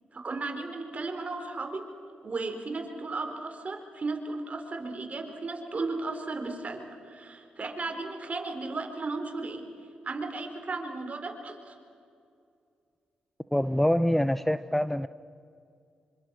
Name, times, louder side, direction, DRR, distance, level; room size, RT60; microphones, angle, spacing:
voice 1, 0.1-1.9 2.2-9.6 10.0-11.8, right 3 dB, 45° right, 4.3 m, -35 dB
voice 2, 13.5-15.1, left 1 dB, 5° left, 0.6 m, -25 dB
26.0 x 25.5 x 6.3 m
supercardioid pair, 55°, 3 cm